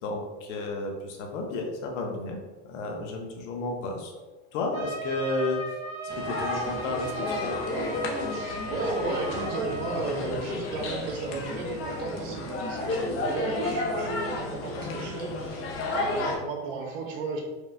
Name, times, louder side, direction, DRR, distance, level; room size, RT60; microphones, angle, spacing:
voice 1, 0.0-2.4 2.7-4.1 4.5-5.6 6.2-7.5, left 2 dB, 75° left, 2 dB, 1.0 m, -32 dB
Trumpet, 4.7-10.0, right 2 dB, 65° right, 1.5 m, -36 dB
sound 1, 6.1-16.4, left 2 dB, 35° left, 0.8 m, -32 dB
voice 2, 8.3-17.4, right 4 dB, 85° right, 0 dB, 1.2 m, -34 dB
4.8 x 2.3 x 3.4 m, 1.2 s
supercardioid pair, 145°, 36 cm